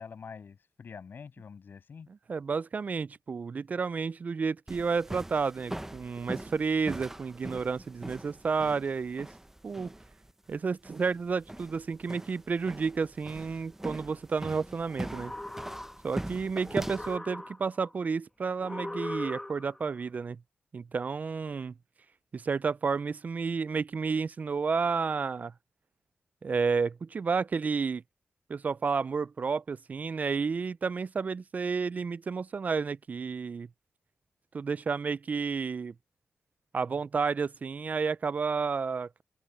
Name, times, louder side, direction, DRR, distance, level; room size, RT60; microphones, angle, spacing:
voice 1, 0.0-2.1 16.7-16.9, left 6 dB, 65° left, 7.8 m, -46 dB
voice 2, 2.3-9.3 9.6-9.9 10.5-15.3 16.0-20.4 20.7-21.7 22.3-25.5 26.4-28.0 28.5-33.7 34.5-35.9 36.7-39.2, right 5 dB, 45° right, 0.3 m, -31 dB
sound 1, 4.7-17.2, right 1 dB, 10° right, 0.6 m, -41 dB
sound 2, 14.9-16.3 16.6-17.9 18.6-19.9, left 1 dB, 15° left, 1.9 m, -40 dB
open air
wide cardioid pair, 115°, 4 cm